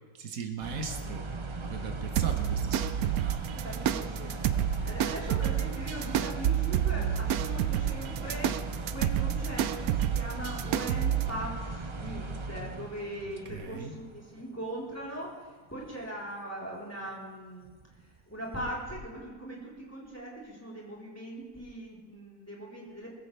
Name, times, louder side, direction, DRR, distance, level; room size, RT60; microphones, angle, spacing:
voice 1, 0.1-1.2 1.6-3.6 4.8-5.0 13.2-13.9, right 5 dB, 70° right, 4 dB, 1.7 m, -39 dB
sound 1, 0.6-14.7 15.0-15.3 15.9-16.1 17.1-17.2 17.6-18.4 18.8-18.9, right 3 dB, 30° right, 0.5 m, -38 dB
sound 2, 2.2-11.3, right 10 dB, 85° right, 1.1 m, -29 dB
voice 2, 3.6-4.4 4.8-8.5 8.9-15.3 15.7-17.7 18.3-23.2, right 1 dB, 10° left, -6 dB, 3.9 m, -40 dB
20.5 x 15.5 x 3.4 m, 1.5 s
omnidirectional pair, 1.5 m